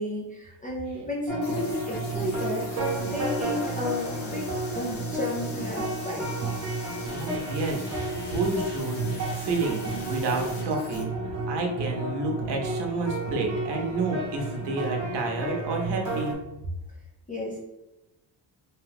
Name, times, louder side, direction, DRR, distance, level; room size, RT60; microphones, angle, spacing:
voice 1, 0.0-4.5 4.7-6.3 17.3-17.6, left 1 dB, 20° left, -4 dB, 0.3 m, -32 dB
sound 1, 1.3-16.3, right 2 dB, 40° right, 0.9 m, -32 dB
sound 2, 1.4-11.0, left 3 dB, 90° left, 1.0 m, -44 dB
voice 2, 7.1-11.2 11.5-16.4, right 3 dB, 65° right, 2 dB, 0.8 m, -30 dB
2.8 x 2.3 x 3.4 m, 0.94 s
cardioid pair, 175°, 46 cm